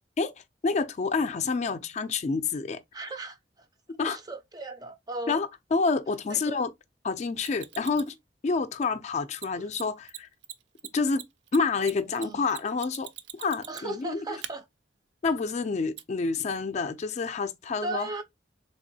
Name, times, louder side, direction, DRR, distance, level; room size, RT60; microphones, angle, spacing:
voice 1, 0.6-2.8 4.0-4.2 5.3-6.7 7.0-8.1 8.4-10.3 10.9-11.2 11.5-14.3 15.2-18.1, left 4 dB, 40° left, 0.3 m, -28 dB
voice 2, 2.9-3.7 4.1-5.4 6.3-6.6 9.6-9.7 12.1-12.4 13.7-14.6 17.8-18.2, right 2 dB, 20° right, 0.4 m, -37 dB
Mechanisms, 7.4-8.1 9.3-9.5 9.7-9.8 10.1-10.2 10.4-14.0 14.4-14.5 16.0-16.1, right 12 dB, 90° right, 0.4 m, -41 dB
3.5 x 2.9 x 2.6 m
head